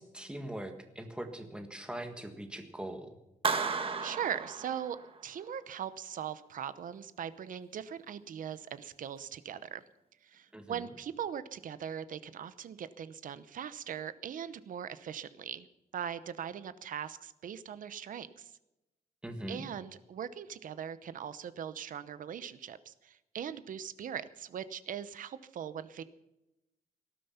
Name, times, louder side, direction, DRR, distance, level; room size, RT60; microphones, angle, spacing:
voice 1, 0.0-3.1 10.5-10.9 19.2-19.6, right 1 dB, 5° right, 6 dB, 1.6 m, -41 dB
Clapping, 3.4-5.3, right 5 dB, 40° right, 1.5 m, -34 dB
voice 2, 4.0-5.0 5.2-9.8 10.2-15.7 15.9-18.5 19.5-26.0, right 8 dB, 70° right, 14 dB, 0.9 m, -40 dB
18.5 x 12.5 x 5.7 m, 0.93 s
wide cardioid pair, 175°, 14 cm